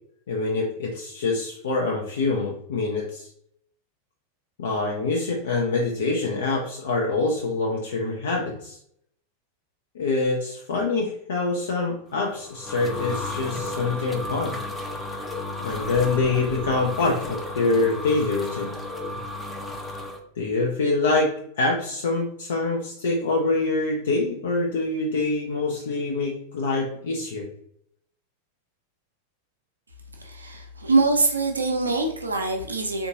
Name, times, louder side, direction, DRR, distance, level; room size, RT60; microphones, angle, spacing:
voice 1, 0.3-3.3 4.6-8.8 9.9-14.6 15.6-18.7 20.4-21.3 21.6-27.5, left 3 dB, 65° left, -1 dB, 0.5 m, -25 dB
sound 1, 12.2-20.2, left 2 dB, 10° left, 0.5 m, -33 dB
voice 2, 30.2-33.1, right 3 dB, 75° right, 2 dB, 0.6 m, -24 dB
3.7 x 2.6 x 2.7 m, 0.68 s
figure-of-eight pair, 90°, 0 cm